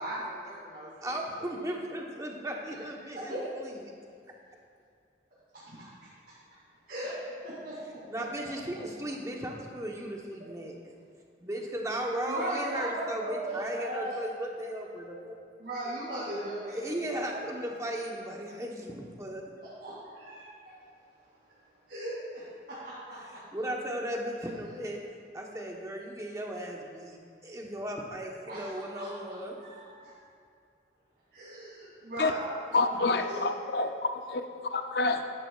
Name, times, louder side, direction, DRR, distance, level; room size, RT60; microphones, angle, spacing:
voice 1, 0.0-1.6 2.3-3.5 5.5-5.8 6.9-8.8 12.3-14.2 15.6-17.4 19.6-20.7 21.9-23.4 28.5-29.1 29.6-30.1 31.3-33.5, right 1 dB, 55° right, 2.7 m, -39 dB
voice 2, 1.0-3.3 8.1-10.7 11.4-15.4 16.6-19.4 23.5-25.0 25.3-27.2 27.4-29.5, right 1 dB, 15° right, 1.0 m, -36 dB
voice 3, 32.7-35.3, left 3 dB, 60° left, 0.5 m, -28 dB
13.5 x 11.0 x 2.4 m
head